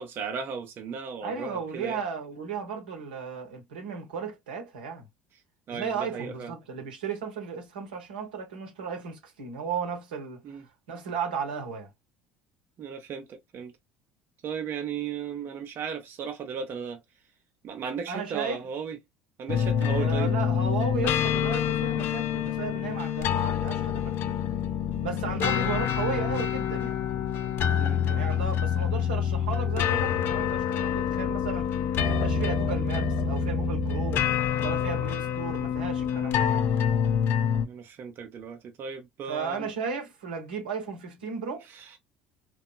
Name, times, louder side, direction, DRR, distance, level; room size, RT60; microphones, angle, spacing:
voice 1, 0.0-2.0 5.7-6.5 10.4-10.7 12.8-13.7 14.4-17.0 17.6-19.0 19.4-20.3 25.3-25.7 27.8-28.0 37.6-39.7 41.7-42.0, right 6 dB, 45° right, 0.6 m, -36 dB
voice 2, 1.2-5.1 5.7-10.4 10.9-11.9 18.1-18.6 19.9-24.3 25.0-27.0 28.1-31.8 32.1-34.3 34.6-36.6 39.3-41.7, right 5 dB, 75° right, 0.8 m, -35 dB
sound 1, 19.5-37.7, left 8 dB, 50° left, 0.4 m, -27 dB
2.8 x 2.3 x 2.2 m
figure-of-eight pair, 60°, 5 cm